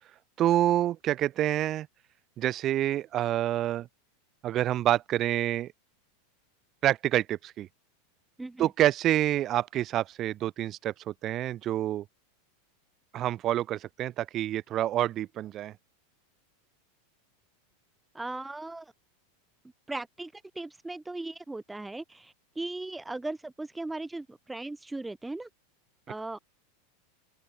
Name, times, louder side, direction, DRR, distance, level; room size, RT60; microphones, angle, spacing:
voice 1, 0.4-1.9 2.4-3.9 4.4-5.7 6.8-7.7 8.6-12.0 13.1-15.7, right 13 dB, 40° right, 0.6 m, -27 dB
voice 2, 8.4-8.7 18.1-18.9 19.9-25.5 26.1-26.4, right 2 dB, 10° right, 1.2 m, -38 dB
open air
figure-of-eight pair, 90°, 0 cm